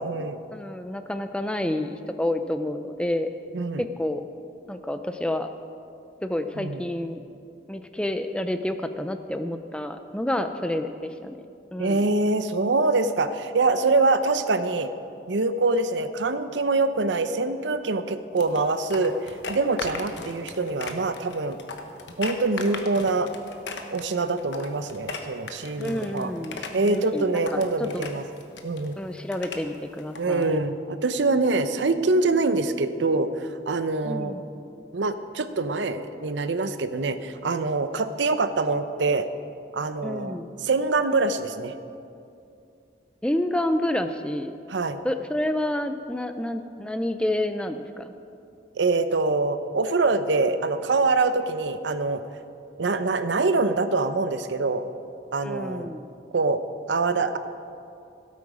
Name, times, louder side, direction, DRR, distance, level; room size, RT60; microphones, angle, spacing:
voice 1, 0.0-0.4 3.5-3.8 6.6-6.8 11.8-14.9 15.3-21.6 22.2-23.3 23.9-26.3 26.7-28.2 28.6-29.0 30.2-34.4 34.9-39.3 39.7-41.7 44.7-45.0 48.8-52.2 52.8-54.8 55.3-55.9 56.3-56.6 56.9-57.4, right 3 dB, 90° right, 11 dB, 0.7 m, -24 dB
voice 2, 0.5-3.3 3.8-4.3 4.7-5.5 6.2-7.2 7.7-11.4 11.7-12.0 25.8-28.1 29.0-30.5 34.0-34.4 40.0-40.5 43.2-44.6 45.0-48.1 55.4-56.0, left 1 dB, 5° left, 8 dB, 0.4 m, -29 dB
sound 1, 18.4-30.5, left 3 dB, 85° left, 1.1 m, -38 dB
16.5 x 8.5 x 4.9 m, 2.5 s
head